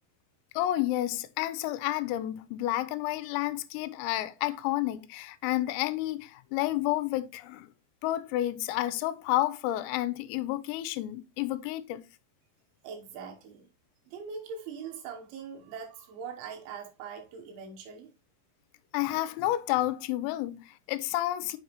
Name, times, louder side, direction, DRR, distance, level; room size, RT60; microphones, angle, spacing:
voice 1, 0.5-7.7 8.0-12.0 18.9-21.6, left 15 dB, 85° left, 3.2 m, -30 dB
voice 2, 12.8-13.7 14.1-18.1, right 6 dB, 75° right, 3.3 m, -42 dB
7.2 x 6.1 x 2.9 m
omnidirectional pair, 6.0 m